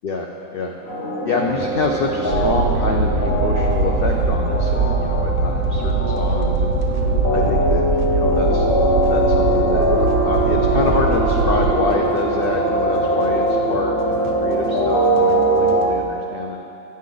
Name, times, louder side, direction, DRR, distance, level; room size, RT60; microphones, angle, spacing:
voice 1, 0.0-0.7 1.2-6.8 7.3-8.7 9.1-16.6, left 3 dB, 90° left, 1 dB, 0.5 m, -26 dB
sound 1, 0.9-15.8, right 1 dB, 45° left, 1.2 m, -21 dB
sound 2, 1.4-16.0, right 5 dB, 60° right, 0.6 m, -38 dB
sound 3, 2.3-11.7, right 4 dB, 75° right, 1.1 m, -21 dB
9.1 x 5.3 x 3.9 m, 2.8 s
omnidirectional pair, 1.5 m